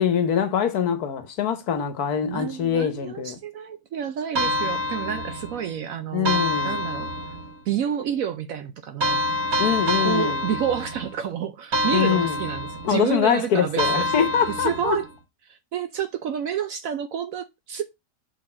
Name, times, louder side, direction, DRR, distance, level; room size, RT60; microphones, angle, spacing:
voice 1, 0.0-3.4 6.1-6.8 9.6-10.5 11.9-12.4 12.8-15.0, left 8 dB, 65° left, 1.3 m, -24 dB
voice 2, 2.2-7.4 7.7-9.2 10.0-14.1 14.6-15.1 15.4-17.8, right 9 dB, 70° right, 0.9 m, -29 dB
sound 1, 4.3-5.7 6.2-7.6 9.0-11.2 11.7-13.0 13.8-15.1, left 1 dB, 45° right, 1.3 m, -26 dB
5.6 x 4.1 x 4.2 m
omnidirectional pair, 1.8 m